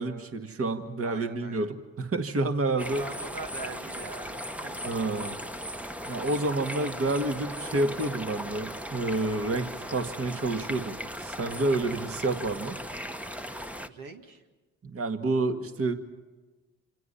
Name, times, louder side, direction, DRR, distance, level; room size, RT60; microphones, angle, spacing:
voice 1, 0.0-3.0 4.8-5.4 6.0-12.8 14.8-15.9, right 2 dB, 40° right, 6 dB, 2.1 m, -29 dB
voice 2, 1.0-1.7 3.0-4.8 13.9-14.4, right 4 dB, 65° right, 3 dB, 2.0 m, -42 dB
sound 1, 2.8-13.9, equal, 5° right, 1.1 m, -38 dB
28.0 x 27.0 x 5.7 m, 1.2 s
hypercardioid pair, 50°, 37 cm